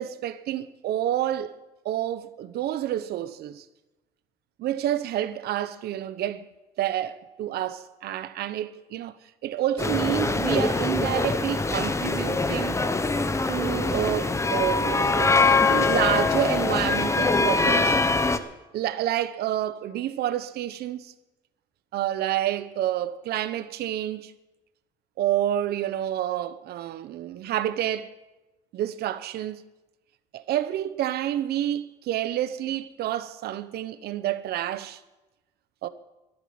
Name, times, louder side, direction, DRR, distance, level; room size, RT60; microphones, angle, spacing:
voice 1, 0.0-1.6 1.8-3.6 4.6-6.5 6.8-9.2 9.4-12.7 13.5-17.9 18.7-21.1 21.9-24.3 25.2-28.1 28.7-29.6 30.3-35.0 35.8-35.9, right 12 dB, 70° right, 0.9 m, -29 dB
sound 1, 9.8-18.4, left 3 dB, 15° left, 1.0 m, -23 dB
12.0 x 11.5 x 9.5 m
cardioid pair, 110°, 17 cm